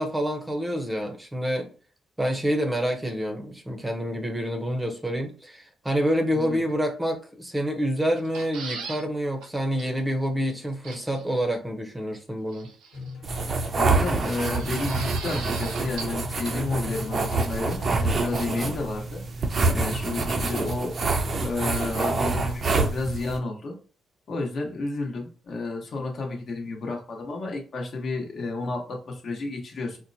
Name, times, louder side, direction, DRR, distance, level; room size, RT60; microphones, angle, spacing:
voice 1, 0.0-1.7 2.2-12.7 18.5-18.7, equal, 10° right, 3 dB, 0.7 m, -27 dB
sound 1, 8.2-9.0 9.4-9.5 9.8-9.9 10.8-11.2 12.5-13.1 14.5-16.2 16.4-16.5, right 5 dB, 90° right, 0.5 m, -38 dB
sound 2, 12.9-18.9, left 3 dB, 85° left, 1.2 m, -41 dB
sound 3, 13.2-23.4, right 3 dB, 45° right, 0.6 m, -26 dB
voice 2, 13.7-19.2 19.7-20.9 21.4-23.8 24.3-30.0, left 3 dB, 55° left, 1 dB, 1.0 m, -31 dB
4.3 x 2.1 x 2.7 m, 0.38 s
cardioid pair, 90°, 0 cm